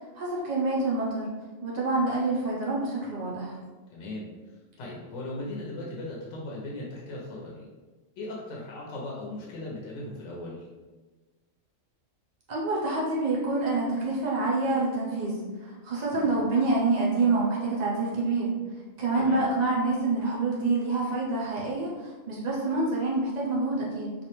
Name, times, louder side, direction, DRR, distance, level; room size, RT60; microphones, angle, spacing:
voice 1, 0.1-1.3 1.6-3.6 12.5-18.5 19.0-24.1, right 3 dB, 85° right, -4 dB, 0.3 m, -27 dB
voice 2, 3.9-4.3 4.8-7.7 8.2-10.6 16.1-16.3 19.1-19.5, left 2 dB, 70° left, -3 dB, 0.8 m, -38 dB
2.4 x 2.1 x 2.9 m, 1.2 s
omnidirectional pair, 1.4 m